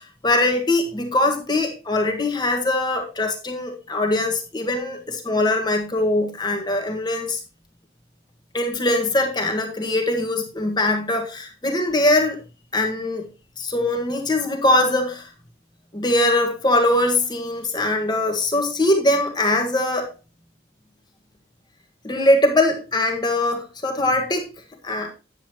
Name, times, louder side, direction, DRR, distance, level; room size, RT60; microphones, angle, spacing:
voice 1, 0.0-7.4 8.5-12.4 12.7-13.3 13.6-15.3 15.9-20.1 22.0-24.5 24.8-25.1, left 1 dB, 25° left, 1.6 m, -22 dB
9.9 x 8.1 x 3.0 m
head